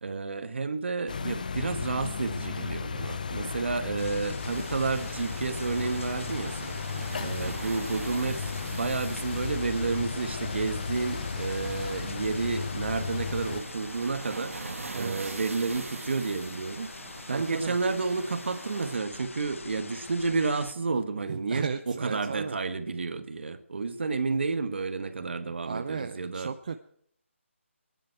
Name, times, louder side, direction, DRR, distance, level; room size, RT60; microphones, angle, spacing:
voice 1, 0.0-6.8 7.2-14.6 14.9-16.9 17.3-26.5, right 4 dB, 55° right, 10 dB, 1.4 m, -31 dB
sound 1, 1.1-13.6, left 5 dB, 35° left, 0.5 m, -35 dB
sound 2, 4.0-20.7, left 4 dB, 70° left, 0.9 m, -44 dB
sound 3, 4.5-19.0, right 3 dB, 75° right, 1.7 m, -43 dB
voice 2, 14.9-15.4 17.3-17.8 21.3-22.6 25.6-26.8, right 5 dB, 35° right, 8 dB, 0.5 m, -35 dB
21.5 x 11.0 x 4.7 m, 0.67 s
hypercardioid pair, 175°, 7 cm